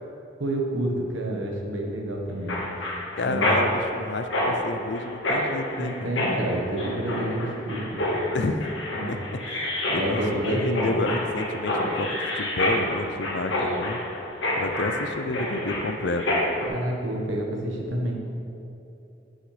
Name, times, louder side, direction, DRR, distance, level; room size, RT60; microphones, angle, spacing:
voice 1, 0.4-2.6 3.2-3.6 5.8-8.4 8.9-9.2 9.9-11.1 16.7-18.1, right 1 dB, 80° right, 0 dB, 1.3 m, -29 dB
Mechanisms, 2.5-16.7, left 1 dB, 80° left, 1.5 m, -28 dB
voice 2, 3.2-6.1 8.3-8.7 9.1-9.4 9.9-14.0 14.6-16.2, left 2 dB, 65° left, 8 dB, 0.5 m, -30 dB
10.0 x 6.4 x 3.3 m, 2.9 s
head